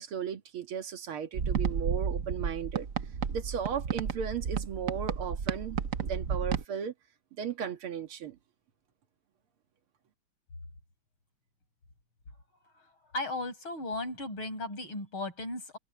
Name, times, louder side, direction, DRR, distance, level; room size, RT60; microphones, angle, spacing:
voice 1, 0.0-2.9 3.3-6.9 7.4-8.4, right 7 dB, 85° right, 2.5 m, -36 dB
sound 1, 1.3-6.6, right 7 dB, 50° right, 1.2 m, -32 dB
voice 2, 13.1-15.8, left 2 dB, 75° left, 7.8 m, -36 dB
omnidirectional pair, 2.3 m